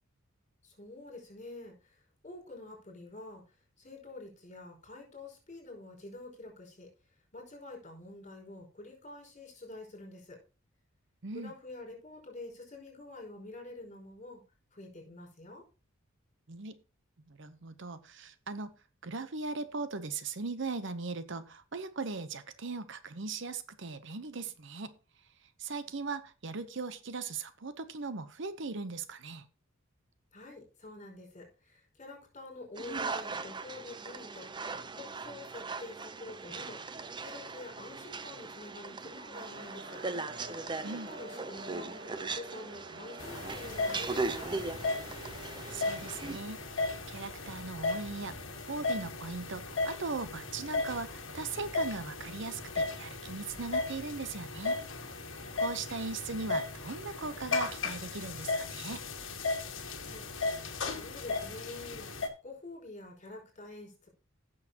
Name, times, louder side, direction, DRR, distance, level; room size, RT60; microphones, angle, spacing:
voice 1, 0.6-3.4 3.8-6.9 7.3-10.4 11.3-14.4 14.7-15.6 30.3-36.8 37.2-40.0 40.8-41.9 42.2-44.6 60.0-60.6 60.9-64.1, left 2 dB, 35° left, 1 dB, 5.3 m, -47 dB
voice 2, 16.5-16.8 17.3-18.7 19.0-24.9 25.4-29.5 40.8-41.1 45.7-54.8 55.3-59.0, right 4 dB, 60° right, 12 dB, 0.8 m, -39 dB
sound 1, 32.8-46.4, right 3 dB, 20° right, 0.7 m, -39 dB
sound 2, 39.3-56.0, right 1 dB, 45° right, 1.7 m, -53 dB
sound 3, 43.2-62.3, left 3 dB, 65° left, 1.8 m, -36 dB
16.0 x 6.6 x 2.9 m, 0.34 s
head